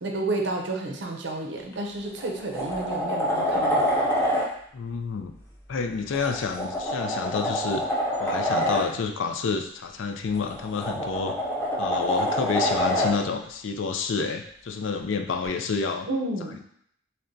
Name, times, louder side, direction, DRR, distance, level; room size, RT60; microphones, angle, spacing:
voice 1, 0.0-3.8 16.1-16.6, right 2 dB, 60° right, 2 dB, 0.6 m, -30 dB
sound 1, 1.6-1.7 2.2-4.5 6.1-8.9 10.4-13.2 15.5-15.6, equal, 10° left, 0.7 m, -26 dB
voice 2, 4.7-5.3 5.7-7.8 8.2-11.3 11.8-16.1, left 5 dB, 70° left, 5 dB, 0.4 m, -29 dB
6.5 x 2.2 x 2.6 m, 0.67 s
head